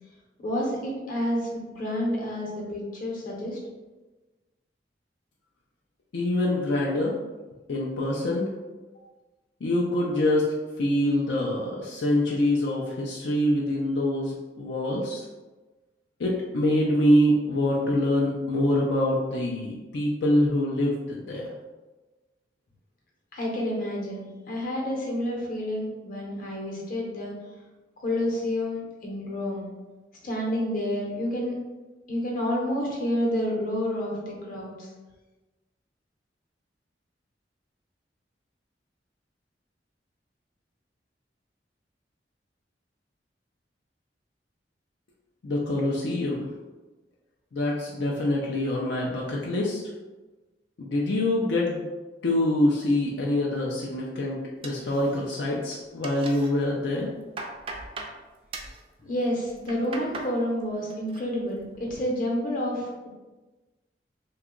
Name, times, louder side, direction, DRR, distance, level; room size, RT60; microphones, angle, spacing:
voice 1, 0.4-3.6 23.3-27.3 28.0-29.7 30.2-31.5 32.1-34.9 59.0-63.1, left 1 dB, 50° left, -2 dB, 0.9 m, -29 dB
voice 2, 6.1-7.1 7.7-8.5 9.6-10.5 10.8-15.2 16.2-21.5 45.4-46.5 47.5-49.8 50.8-51.8 52.2-57.1, left 1 dB, 80° left, -3 dB, 0.5 m, -25 dB
sound 1, 54.6-55.5 55.8-56.5 56.9-58.2 58.5-58.8 59.4-60.3 60.7-61.2 61.6-62.0, right 3 dB, 30° right, 0.3 m, -39 dB
2.8 x 2.3 x 3.6 m, 1.2 s
head